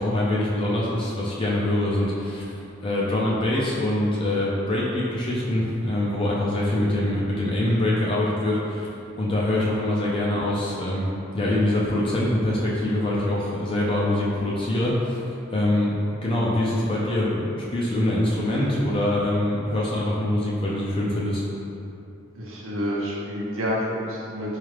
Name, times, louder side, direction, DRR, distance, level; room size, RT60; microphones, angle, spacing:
voice 1, 0.0-8.9 9.2-11.1 11.3-15.2 15.5-16.0 16.2-21.5, left 1 dB, 25° left, -6 dB, 0.4 m, -24 dB
voice 2, 22.3-24.6, equal, 75° right, -5 dB, 0.7 m, -28 dB
4.2 x 2.4 x 3.2 m, 2.8 s
head